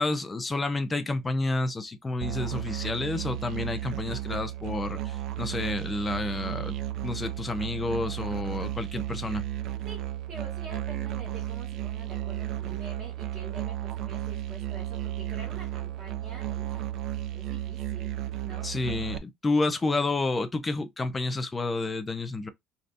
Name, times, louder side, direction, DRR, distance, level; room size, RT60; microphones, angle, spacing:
voice 1, 0.0-6.7 7.0-9.4 18.6-22.5, left 3 dB, 15° left, 0.4 m, -30 dB
Musical instrument, 2.2-19.2, right 13 dB, 55° right, 0.3 m, -34 dB
voice 2, 9.8-16.9 17.3-18.1 18.4-18.8, right 3 dB, 30° right, 1.4 m, -46 dB
3.3 x 2.7 x 2.5 m
cardioid pair, 170°, 0 cm